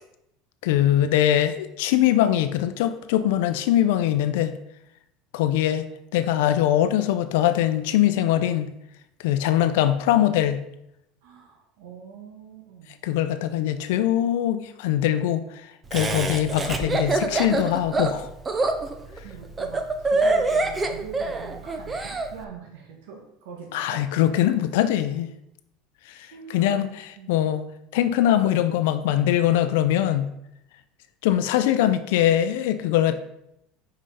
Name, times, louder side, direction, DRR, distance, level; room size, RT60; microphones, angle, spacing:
voice 1, 0.6-4.5 5.3-5.9 6.1-8.7 9.2-10.6 13.0-18.3 23.7-25.3 26.1-27.6 27.9-30.3 31.2-33.2, left 12 dB, 75° left, 10 dB, 0.5 m, -22 dB
voice 2, 11.2-13.0 19.2-24.0 26.3-26.6 27.2-27.4, right 6 dB, 80° right, -1 dB, 1.6 m, -43 dB
Laughter, 15.9-22.3, right 3 dB, 15° right, 0.5 m, -25 dB
5.4 x 5.0 x 5.5 m, 0.80 s
cardioid pair, 180°, 0 cm